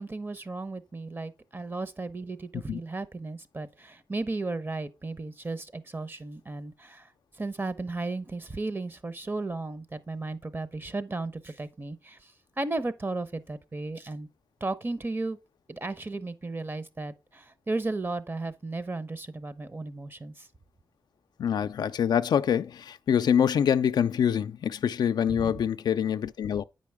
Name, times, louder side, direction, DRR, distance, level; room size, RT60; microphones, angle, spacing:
voice 1, 0.0-7.1 7.4-12.3 12.6-14.3 14.6-15.4 15.7-20.5 25.3-25.5, right 2 dB, 30° right, 0.8 m, -35 dB
voice 2, 21.4-26.6, left 8 dB, 80° left, 0.3 m, -25 dB
8.3 x 5.3 x 3.4 m
cardioid pair, 50°, 7 cm